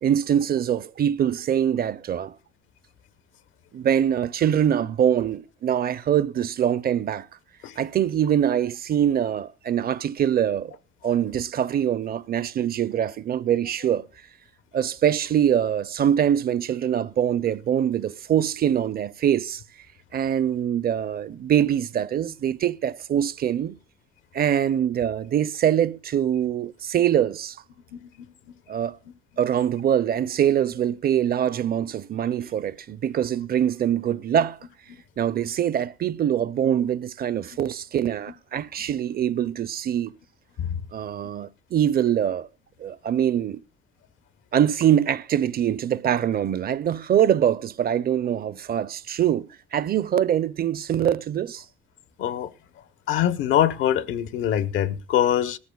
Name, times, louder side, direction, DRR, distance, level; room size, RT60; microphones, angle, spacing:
voice 1, 0.0-2.3 3.7-7.3 7.8-10.7 11.0-14.0 14.7-19.6 20.1-23.8 24.3-27.6 28.7-29.0 29.4-34.6 35.2-40.1 40.9-42.5 42.8-43.6 44.5-51.6, right 9 dB, 50° right, 0.6 m, -23 dB
voice 2, 53.1-55.6, left 10 dB, 85° left, 0.9 m, -23 dB
19.0 x 14.0 x 2.3 m
cardioid pair, 90°, 20 cm